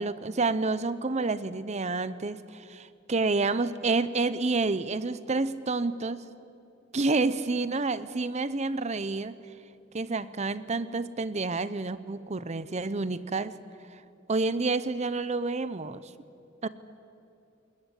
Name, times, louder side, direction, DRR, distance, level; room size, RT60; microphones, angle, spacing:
voice 1, 0.0-6.3 6.9-9.3 9.9-13.5 14.3-16.0 16.6-16.7, right 3 dB, 35° right, 15 dB, 0.7 m, -29 dB
20.5 x 20.0 x 10.0 m, 2.6 s
head